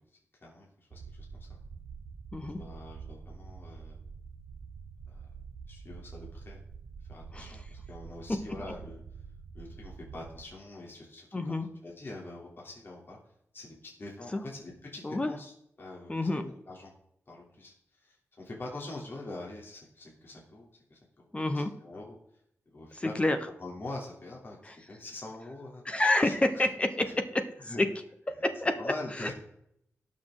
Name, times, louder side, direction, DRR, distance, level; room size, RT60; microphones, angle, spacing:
voice 1, 0.4-1.6 2.6-4.0 5.1-5.3 5.7-6.6 7.1-9.0 9.5-11.6 11.8-13.2 13.5-15.5 15.8-16.9 17.3-22.2 22.7-23.2 23.4-25.8 26.2-26.7 27.0-27.1 27.6-27.8 28.8-29.3, left 2 dB, 45° left, -2 dB, 3.3 m, -44 dB
sound 1, 0.9-10.5, right 5 dB, 75° right, 0.9 m, -46 dB
voice 2, 11.3-11.7 14.3-14.4 15.0-15.3 16.1-16.4 21.3-21.7 22.9-23.4 24.6-24.8 25.8-27.4 27.8-27.9 28.3-29.3, left 2 dB, 25° left, 7 dB, 1.0 m, -28 dB
18.5 x 6.4 x 3.9 m, 0.73 s
wide cardioid pair, 105°, 5 cm